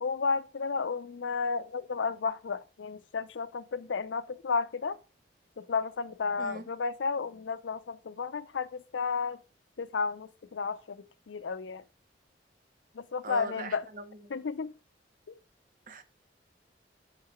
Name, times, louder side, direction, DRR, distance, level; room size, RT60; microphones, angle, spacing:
voice 1, 0.0-5.0 5.6-9.4 9.8-11.8 12.9-13.8 14.3-14.7 15.3-15.4, left 5 dB, 85° left, 0.5 m, -32 dB
voice 2, 6.4-6.7 13.2-14.3 15.9-16.0, right 1 dB, 50° right, 0.8 m, -41 dB
6.4 x 3.8 x 4.3 m
head